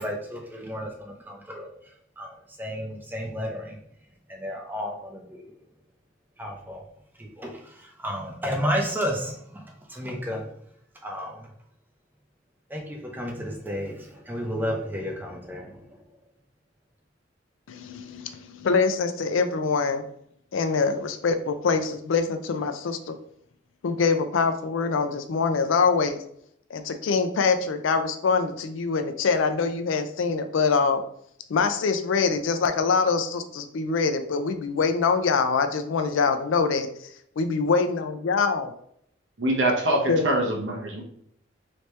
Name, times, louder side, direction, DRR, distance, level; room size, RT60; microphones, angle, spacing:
voice 1, 0.0-1.7 2.2-3.8 4.3-5.4 6.4-6.8 7.2-7.5 8.0-9.6 9.9-10.4 11.0-11.5 12.7-15.8, equal, 10° right, 0 dB, 0.6 m, -32 dB
voice 2, 17.7-20.0 20.5-23.1 23.8-26.2 26.7-31.0 31.5-36.9 37.4-38.7 40.1-40.3, left 5 dB, 80° left, 8 dB, 0.4 m, -24 dB
voice 3, 39.4-41.0, right 1 dB, 65° right, 0 dB, 0.9 m, -24 dB
3.2 x 2.8 x 3.2 m, 0.69 s
head